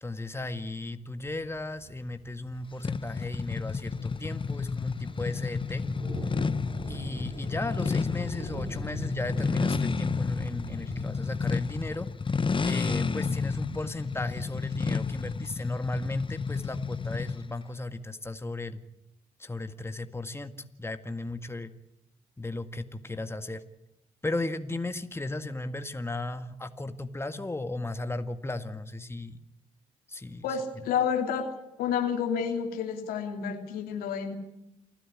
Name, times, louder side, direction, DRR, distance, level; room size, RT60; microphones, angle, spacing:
voice 1, 0.0-5.8 6.9-12.1 12.6-18.8 19.4-21.7 22.4-23.6 24.2-29.4 30.1-30.6, left 2 dB, 15° left, 8 dB, 1.8 m, -35 dB
sound 1, 1.2-11.2, right 3 dB, 80° right, 7.8 m, -43 dB
Ducati Scrambler bike exhaust, 2.8-17.5, left 5 dB, 35° left, 1.0 m, -31 dB
voice 2, 30.4-31.5 31.8-34.3, left 7 dB, 85° left, 4 dB, 2.8 m, -29 dB
29.0 x 10.0 x 9.9 m, 0.87 s
hypercardioid pair, 50°, 15 cm